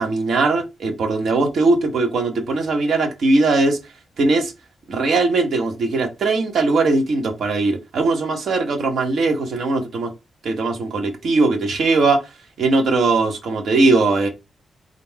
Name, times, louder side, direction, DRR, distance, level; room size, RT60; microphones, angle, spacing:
voice 1, 0.0-3.8 4.2-4.5 4.9-10.1 10.4-12.2 12.6-14.3, right 3 dB, 65° right, 1.0 m, -19 dB
3.7 x 2.5 x 4.5 m
wide cardioid pair, 165°, 0 cm